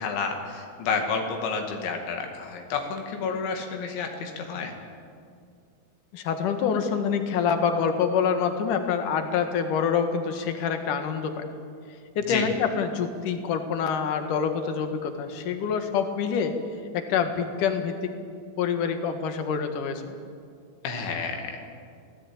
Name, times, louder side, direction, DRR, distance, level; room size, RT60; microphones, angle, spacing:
voice 1, 0.0-4.7 12.3-12.5 20.8-21.7, left 5 dB, 80° left, 3 dB, 4.5 m, -30 dB
voice 2, 6.1-11.4 12.2-16.5 16.9-18.0 18.6-20.2, left 6 dB, 55° left, 7 dB, 2.6 m, -26 dB
26.0 x 17.5 x 8.6 m, 2.3 s
omnidirectional pair, 5.3 m